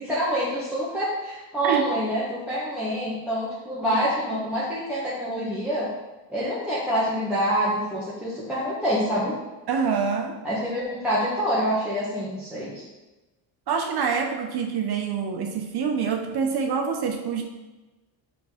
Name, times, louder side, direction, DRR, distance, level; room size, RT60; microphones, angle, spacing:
voice 1, 0.0-5.9 6.3-9.3 10.4-12.8, equal, ahead, -10 dB, 1.5 m, -26 dB
voice 2, 9.7-10.4 13.7-17.4, right 6 dB, 50° right, 4 dB, 0.8 m, -26 dB
5.1 x 4.8 x 5.0 m, 1.1 s
cardioid pair, 115°, 48 cm